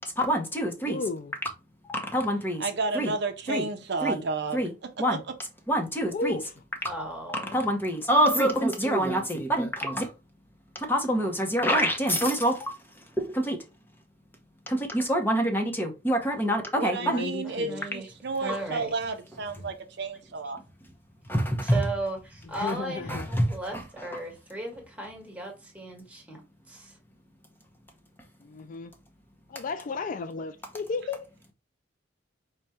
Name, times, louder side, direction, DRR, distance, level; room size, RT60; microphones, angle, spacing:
voice 1, 0.2-1.0 1.9-2.7 2.9-3.1 3.5-3.7 4.0-4.2 4.5-4.7 5.0-5.2 5.7-6.4 7.3-10.1 10.7-12.7 13.2-13.6 14.7-17.2 18.5-18.6 21.3-21.8 23.1-23.5 23.7-24.1, equal, 10° left, 0.8 m, -26 dB
voice 2, 0.8-1.3 6.1-6.5 7.5-7.6 16.9-17.8 19.6-19.7 22.6-23.3 28.4-28.9 29.5-31.3, left 4 dB, 40° left, 0.3 m, -34 dB
voice 3, 2.6-5.2 16.7-20.6, right 3 dB, 55° right, 0.6 m, -32 dB
voice 4, 6.8-7.5 17.4-18.1 18.4-18.9 21.6-26.4 26.7-26.9, right 2 dB, 5° right, 1.4 m, -36 dB
4.8 x 2.2 x 4.1 m
head